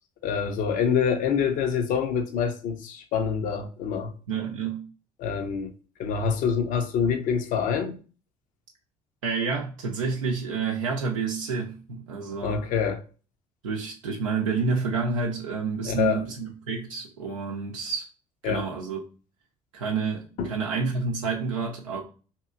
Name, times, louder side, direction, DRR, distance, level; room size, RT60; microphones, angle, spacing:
voice 1, 0.2-4.1 5.2-5.7 6.0-8.0 12.4-13.0 15.8-16.2 18.4-18.7 20.4-20.5, left 6 dB, 50° left, 0.6 m, -26 dB
voice 2, 4.3-4.8 9.2-12.6 13.6-18.1 18.4-19.0 19.7-22.0, right 5 dB, 75° right, 0.5 m, -29 dB
2.9 x 2.7 x 2.3 m
figure-of-eight pair, 50°, 17 cm